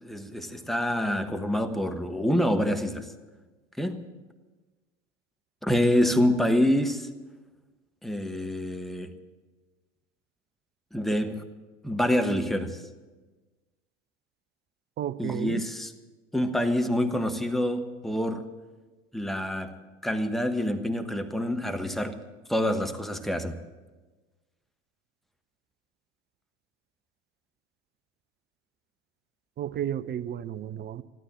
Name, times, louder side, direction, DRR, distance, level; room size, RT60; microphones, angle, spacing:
voice 1, 0.0-3.1 3.8-4.0 5.6-7.1 8.0-9.1 10.9-11.4 11.8-12.8 15.2-15.9 16.3-18.5 19.1-22.2 22.5-23.6, left 1 dB, ahead, 7 dB, 1.1 m, -26 dB
voice 2, 15.0-15.6 29.6-31.0, right 10 dB, 30° right, 15 dB, 0.6 m, -32 dB
14.5 x 12.5 x 7.5 m, 1.3 s
figure-of-eight pair, 80°, 37 cm